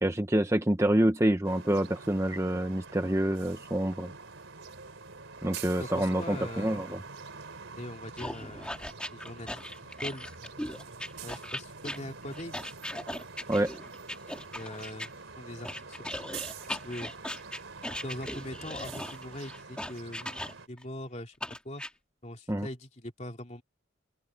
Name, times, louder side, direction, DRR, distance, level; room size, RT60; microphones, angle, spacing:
voice 1, 0.0-4.1 5.4-7.0 13.5-13.7 22.5-22.7, right 1 dB, 15° right, 0.9 m, -27 dB
sound 1, 1.4-20.7, right 4 dB, 70° right, 3.5 m, -46 dB
voice 2, 5.8-6.8 7.8-8.8 9.1-9.6 10.0-10.3 11.2-12.6 14.5-15.1 15.4-16.4 16.7-17.1 18.0-21.3 21.6-21.8 22.2-23.6, left 1 dB, 35° left, 2.8 m, -41 dB
sound 2, 8.2-15.1 15.6-20.8 21.4-21.9, left 1 dB, 5° left, 2.4 m, -38 dB
open air
head